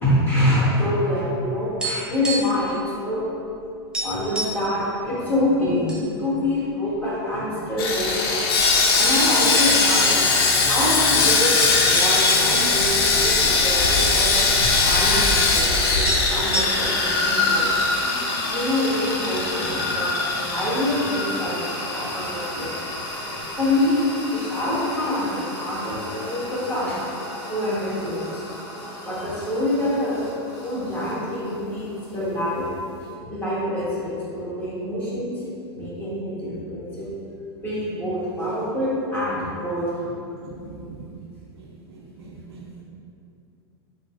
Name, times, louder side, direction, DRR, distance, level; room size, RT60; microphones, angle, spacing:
voice 1, 0.0-3.2 4.0-8.4 9.0-10.3 10.6-16.0 16.3-17.7 18.5-22.7 23.6-27.0 27.5-28.4 29.0-30.2 30.6-32.7 33.0-35.4 35.7-37.1 37.6-40.1, left 1 dB, 15° left, -10 dB, 1.2 m, -26 dB
sound 1, 1.7-2.7 2.9-3.1 3.5-3.6 3.9-4.7 5.4-6.0 6.4-6.5 7.2-7.9 8.6-8.7 9.1-9.6 9.9-10.0 11.1-13.2 13.5-13.6 13.8-14.7 15.7-15.8 16.0-17.1, right 1 dB, 5° right, 0.6 m, -30 dB
Sawing, 7.8-22.0 22.3-22.5 22.9-23.1, left 3 dB, 65° left, 0.4 m, -21 dB
sound 2, 16.5-33.1, left 1 dB, 35° left, 0.8 m, -33 dB
voice 2, 40.4-41.0 42.0-42.8, right 4 dB, 70° right, -2 dB, 0.5 m, -41 dB
3.7 x 2.0 x 2.4 m, 2.6 s
hypercardioid pair, 95°, 14 cm